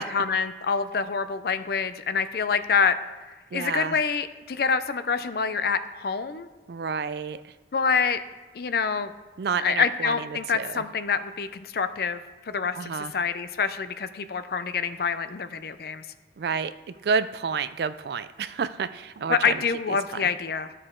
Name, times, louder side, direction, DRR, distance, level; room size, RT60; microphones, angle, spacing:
voice 1, 0.1-3.0 3.5-6.5 7.7-8.2 8.5-9.1 9.6-16.1 19.3-20.7, left 5 dB, 60° left, 12 dB, 0.5 m, -26 dB
voice 2, 3.5-4.0 6.7-7.5 9.4-10.8 12.7-13.1 16.4-19.6 20.1-20.3, right 5 dB, 65° right, 13 dB, 0.4 m, -30 dB
12.5 x 6.7 x 3.7 m, 1.2 s
head